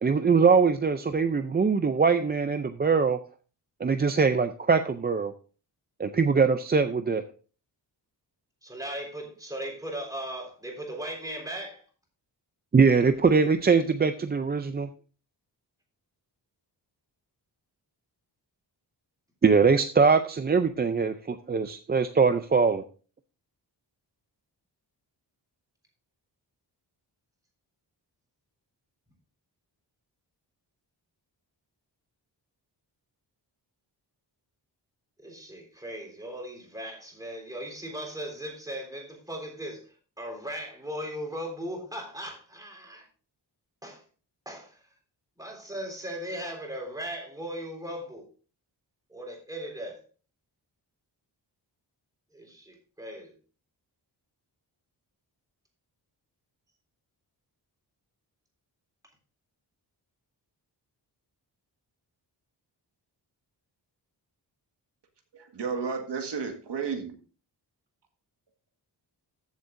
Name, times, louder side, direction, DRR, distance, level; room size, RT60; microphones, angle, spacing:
voice 1, 0.0-3.2 3.8-5.3 6.0-7.2 12.7-14.9 19.4-22.8, right 5 dB, 25° right, 0.4 m, -22 dB
voice 2, 8.6-11.8 35.2-43.1 43.8-44.0 44.5-44.8 45.4-48.3 49.1-50.0 52.3-53.4, equal, 10° right, 3.5 m, -38 dB
voice 3, 65.3-67.1, right 5 dB, 70° right, 1.8 m, -32 dB
14.5 x 7.6 x 2.6 m
wide cardioid pair, 150°, 43 cm